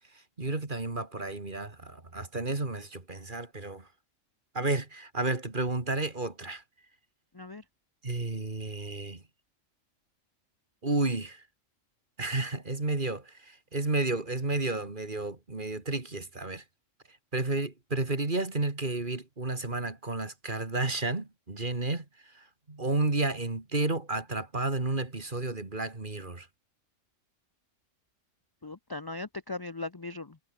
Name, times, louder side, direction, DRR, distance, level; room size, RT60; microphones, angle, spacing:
voice 1, 0.4-3.9 4.5-6.6 8.0-9.2 10.8-11.4 12.2-16.6 17.3-22.0 22.3-26.5, right 2 dB, 40° right, 2.8 m, -31 dB
voice 2, 7.3-7.6 28.6-30.4, left 3 dB, 20° left, 0.7 m, -38 dB
omnidirectional pair, 1.3 m